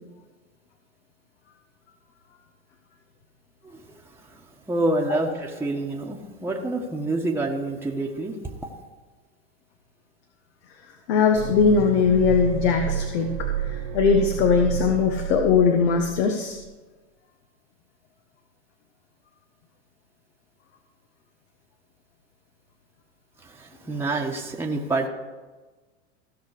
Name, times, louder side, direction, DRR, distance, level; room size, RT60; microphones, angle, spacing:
voice 1, 4.7-8.5 23.4-25.1, right 2 dB, 5° right, -1 dB, 1.3 m, -27 dB
voice 2, 11.1-16.6, left 5 dB, 70° left, 4 dB, 1.3 m, -21 dB
sound 1, 11.3-16.3 16.6-16.7, right 9 dB, 50° right, 1.5 m, -30 dB
16.0 x 6.1 x 5.0 m, 1.3 s
hypercardioid pair, 105°, 34 cm